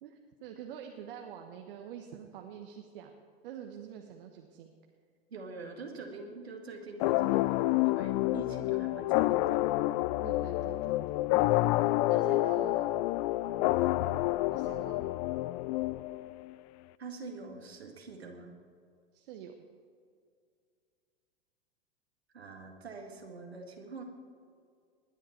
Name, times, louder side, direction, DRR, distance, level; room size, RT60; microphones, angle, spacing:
voice 1, 0.0-4.8 10.2-11.2 12.1-12.9 14.5-15.0 19.1-19.5, right 9 dB, 60° right, 3 dB, 1.3 m, -46 dB
voice 2, 5.3-9.8 13.5-13.7 17.0-18.5 22.3-24.0, right 4 dB, 80° right, 3 dB, 2.1 m, -45 dB
sound 1, 7.0-16.5, left 17 dB, 40° left, 0.4 m, -28 dB
19.5 x 10.0 x 4.5 m, 2.2 s
figure-of-eight pair, 90°, 31 cm